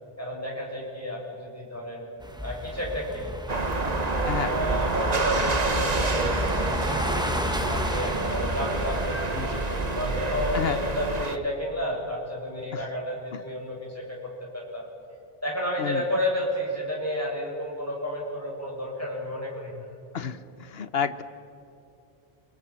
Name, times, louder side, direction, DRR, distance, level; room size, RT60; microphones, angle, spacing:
voice 1, 0.2-2.1 2.4-3.4 3.7-3.8 4.4-6.8 7.7-14.8 15.4-19.9, equal, 15° left, -3 dB, 8.1 m, -31 dB
sound 1, 2.2-11.0, equal, 5° right, 1.5 m, -32 dB
sound 2, 3.5-11.4, right 3 dB, 40° right, 1.4 m, -28 dB
voice 2, 20.1-21.2, left 7 dB, 70° left, 11 dB, 1.3 m, -30 dB
29.0 x 26.5 x 7.7 m, 2.7 s
omnidirectional pair, 1.1 m